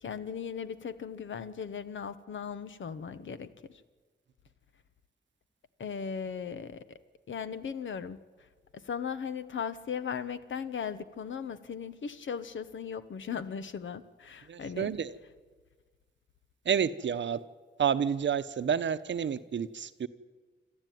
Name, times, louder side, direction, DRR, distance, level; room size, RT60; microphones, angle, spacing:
voice 1, 0.0-3.8 5.8-7.0 7.3-8.2 8.7-14.9, left 7 dB, 75° left, 12 dB, 1.1 m, -37 dB
voice 2, 14.5-15.1 16.7-17.4 17.8-20.1, right 8 dB, 70° right, 13 dB, 0.8 m, -29 dB
27.0 x 13.5 x 9.3 m, 1.4 s
wide cardioid pair, 110°, 20 cm